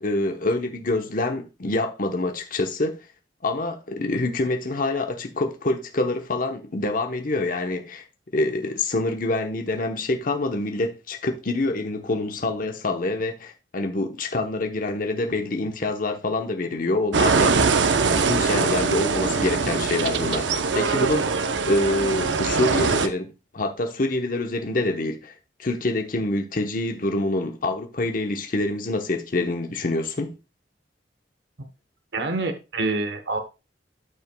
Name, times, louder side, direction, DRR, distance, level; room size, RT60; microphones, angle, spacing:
voice 1, 0.0-3.0 3.4-8.0 8.3-17.6 18.1-25.3 25.6-30.4, left 2 dB, 50° left, 0.9 m, -26 dB
sound 1, 17.1-23.1, right 4 dB, 90° right, 0.8 m, -22 dB
voice 2, 32.1-33.4, right 3 dB, 65° right, 1.0 m, -26 dB
13.0 x 5.9 x 2.2 m
head